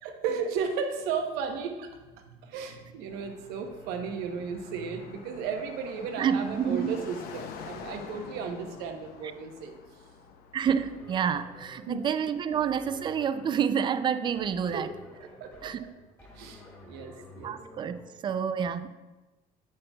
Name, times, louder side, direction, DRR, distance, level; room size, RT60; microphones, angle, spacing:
voice 1, 0.0-1.9 2.2-9.8 11.9-12.0 14.7-14.9 15.2-15.7 16.4-16.6 16.9-17.6, right 6 dB, 85° right, 4 dB, 1.0 m, -34 dB
Car passing by, 3.1-14.2, left 6 dB, 70° left, 0.8 m, -48 dB
voice 2, 6.2-7.0 10.5-14.9 15.6-15.8 17.4-18.9, right 7 dB, 30° right, 12 dB, 0.3 m, -28 dB
sound 1, 10.7-18.0, left 1 dB, 15° left, 2.0 m, -51 dB
8.6 x 8.3 x 2.3 m, 1.2 s
cardioid pair, 140°, 16 cm